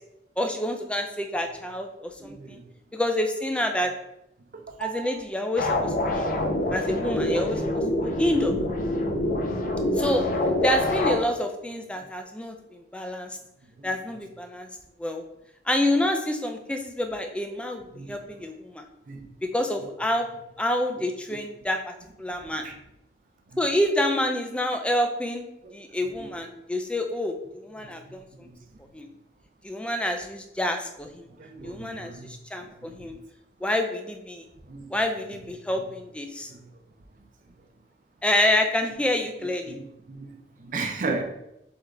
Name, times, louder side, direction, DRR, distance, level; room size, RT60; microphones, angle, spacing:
voice 1, 0.4-2.6 2.9-3.9 4.8-6.3 6.7-8.5 10.0-10.2 10.6-13.4 13.8-14.7 15.0-15.2 15.7-18.8 19.5-20.3 20.6-21.9 22.2-22.6 23.6-25.4 25.7-28.5 28.9-29.1 29.6-31.3 31.6-33.1 33.6-34.4 34.9-36.5 38.2-39.7, left 1 dB, 5° left, 4 dB, 0.4 m, -28 dB
voice 2, 2.2-2.6 4.5-5.2 9.0-9.1 12.0-12.1 13.8-13.9 17.9-18.2 19.1-19.3 21.3-21.4 22.4-22.7 23.5-23.6 26.2-26.3 27.8-28.1 28.4-28.6 31.4-32.3 32.6-32.9 34.7-34.9 36.5-36.6 39.7-41.2, right 4 dB, 50° right, 3 dB, 0.6 m, -36 dB
sound 1, 5.6-11.2, left 1 dB, 50° left, 0.6 m, -26 dB
4.1 x 3.8 x 3.3 m, 0.86 s
head